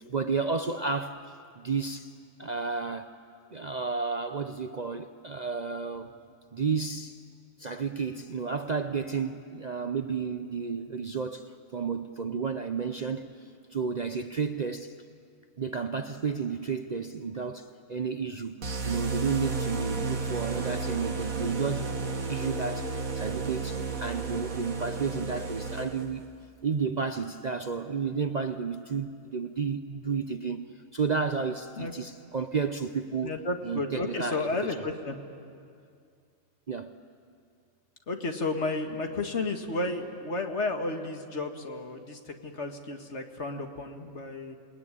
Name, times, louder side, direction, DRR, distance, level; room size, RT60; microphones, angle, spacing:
voice 1, 0.0-2.1 2.4-3.1 3.5-6.1 6.5-7.2 7.6-13.3 13.7-14.9 15.6-22.0 22.3-26.2 26.6-30.7 30.9-33.3 33.6-34.5 36.7-36.9, right 5 dB, 40° right, 8 dB, 0.7 m, -32 dB
sound 1, 18.6-26.3, right 3 dB, 85° right, 2.0 m, -33 dB
voice 2, 33.2-35.2 38.1-44.5, left 2 dB, 55° left, 5 dB, 2.1 m, -32 dB
28.0 x 19.5 x 9.9 m, 2.3 s
omnidirectional pair, 1.4 m